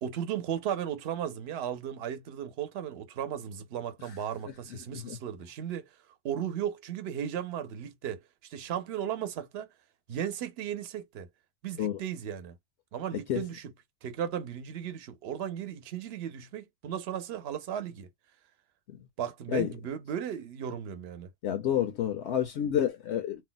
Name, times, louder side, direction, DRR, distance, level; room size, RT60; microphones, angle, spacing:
voice 1, 0.0-5.9 6.2-9.7 10.1-11.3 11.6-12.6 12.9-13.7 14.0-18.1 19.2-21.3, right 9 dB, 65° right, 0.8 m, -35 dB
voice 2, 21.4-23.4, left 10 dB, 75° left, 0.9 m, -29 dB
2.7 x 2.1 x 3.8 m
omnidirectional pair, 1.2 m